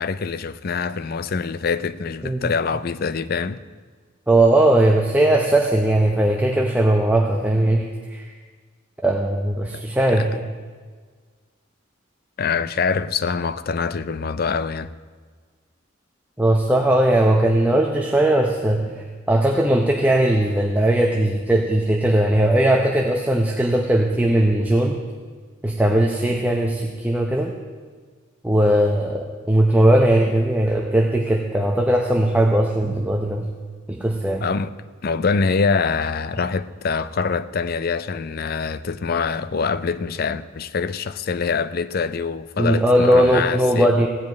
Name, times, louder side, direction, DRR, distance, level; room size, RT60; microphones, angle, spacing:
voice 1, 0.0-3.6 9.7-9.8 10.1-10.3 12.4-14.9 34.4-34.7 35.0-44.1, left 5 dB, 45° left, 0.4 m, -24 dB
voice 2, 2.2-2.5 4.3-8.3 9.0-10.5 16.4-25.0 25.6-27.5 28.4-33.5 33.9-34.5 42.6-44.1, right 1 dB, 10° right, 0.7 m, -19 dB
15.5 x 5.2 x 9.2 m
head